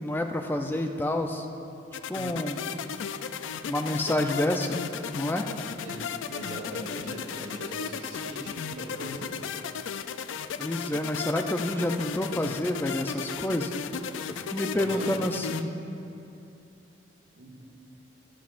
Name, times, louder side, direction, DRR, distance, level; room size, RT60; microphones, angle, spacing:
voice 1, 0.0-1.5 2.1-2.7 3.6-4.8 5.1-5.5 10.6-13.7 14.4-15.7, left 1 dB, 10° left, 4 dB, 0.4 m, -28 dB
sound 1, 1.9-15.6, left 7 dB, 85° left, 0.4 m, -35 dB
voice 2, 6.3-9.4 14.7-15.2 17.3-17.6, right 1 dB, 85° right, -3 dB, 2.1 m, -40 dB
21.5 x 7.4 x 2.5 m, 2.7 s
head